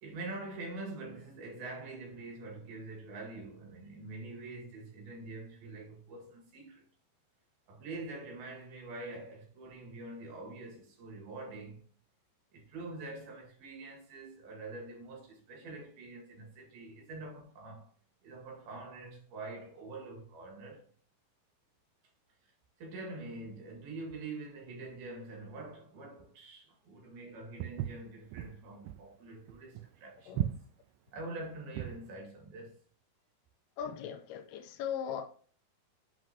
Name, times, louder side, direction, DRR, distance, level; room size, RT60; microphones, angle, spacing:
voice 1, 0.0-6.8 7.7-11.8 12.5-17.9 18.2-20.9 22.4-22.5 22.8-30.6 31.1-32.8, right 2 dB, 70° right, 3.8 m, -45 dB
Walk footsteps, 27.6-32.1, right 14 dB, 85° right, 2.0 m, -37 dB
voice 2, 33.8-35.3, left 8 dB, 90° left, 2.7 m, -38 dB
7.4 x 6.1 x 2.8 m
omnidirectional pair, 4.7 m